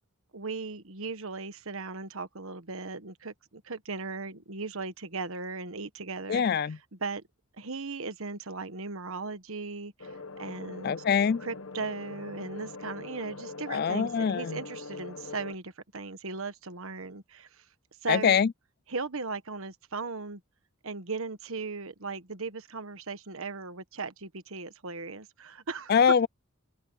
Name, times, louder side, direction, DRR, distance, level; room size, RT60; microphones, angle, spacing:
voice 1, 0.3-6.7 7.0-7.2 7.6-11.0 11.4-17.6 18.0-18.4 18.9-20.4 20.8-26.0, right 4 dB, 70° right, 1.3 m, -37 dB
voice 2, 6.3-6.8 10.8-11.4 13.7-14.6 18.1-18.5 25.9-26.3, left 7 dB, 45° left, 0.3 m, -24 dB
sound 1, 10.0-15.5, left 3 dB, 65° left, 1.3 m, -42 dB
head